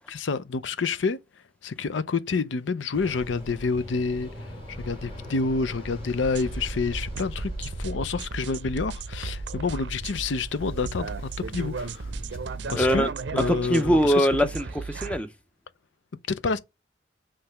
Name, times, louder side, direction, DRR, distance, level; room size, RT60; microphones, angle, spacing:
voice 1, 0.1-1.2 1.6-4.3 4.7-12.1 12.7-14.3 16.3-16.6, left 4 dB, 90° left, 0.5 m, -28 dB
Waves surf, 2.9-13.1, equal, 30° left, 4.5 m, -39 dB
sound 1, 6.2-15.2, right 4 dB, 75° right, 0.5 m, -36 dB
voice 2, 12.7-13.1 13.4-15.3, equal, 5° left, 0.6 m, -22 dB
7.7 x 3.2 x 5.6 m
head